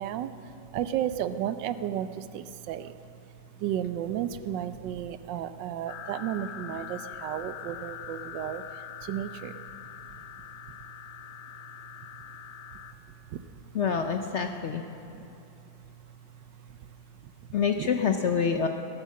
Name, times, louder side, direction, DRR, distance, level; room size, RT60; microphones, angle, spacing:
voice 1, 0.0-3.0 3.5-9.6 13.3-13.4 15.1-15.3 15.8-15.9 16.7-16.9 17.2-17.3 17.8-17.9, right 10 dB, 90° right, 12 dB, 1.3 m, -33 dB
sound 1, 5.9-12.9, left 9 dB, 85° left, 1.5 m, -43 dB
voice 2, 13.7-14.8 17.5-18.7, left 6 dB, 65° left, 5 dB, 0.7 m, -26 dB
17.0 x 11.0 x 7.4 m, 2.8 s
omnidirectional pair, 1.9 m